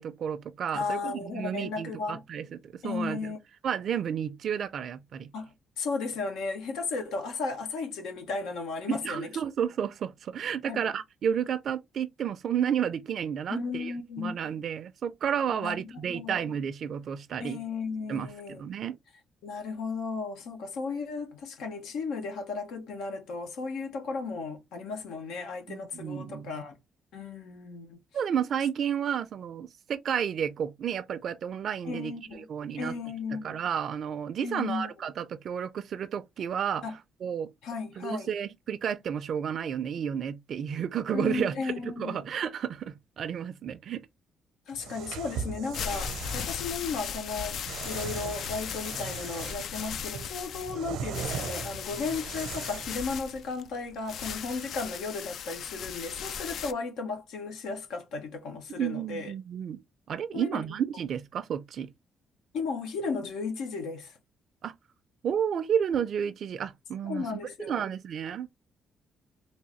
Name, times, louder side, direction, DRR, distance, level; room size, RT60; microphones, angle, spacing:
voice 1, 0.0-3.3 3.6-5.3 8.9-17.6 18.1-19.0 25.7-26.6 28.1-32.9 33.3-36.8 37.2-37.5 38.0-44.0 58.8-59.8 60.1-61.9 64.6-64.7 65.2-68.6, right 8 dB, 60° right, 0.4 m, -32 dB
voice 2, 0.7-2.2 2.8-3.4 5.3-5.5 5.8-9.3 10.7-10.9 13.5-14.4 15.6-16.4 17.4-18.6 19.4-26.7 27.1-28.0 31.8-32.4 32.8-33.6 34.4-34.9 36.8-36.9 37.6-38.3 41.1-42.2 44.7-47.6 47.8-59.3 60.3-60.6 62.5-64.2 67.0-67.8, left 4 dB, 90° left, 1.1 m, -35 dB
sound 1, 44.7-46.6 47.6-49.7 50.1-53.0, right 7 dB, 90° right, 0.7 m, -39 dB
sound 2, 45.5-56.7, left 7 dB, 70° left, 0.4 m, -37 dB
3.6 x 2.7 x 3.0 m
cardioid pair, 90°, 0 cm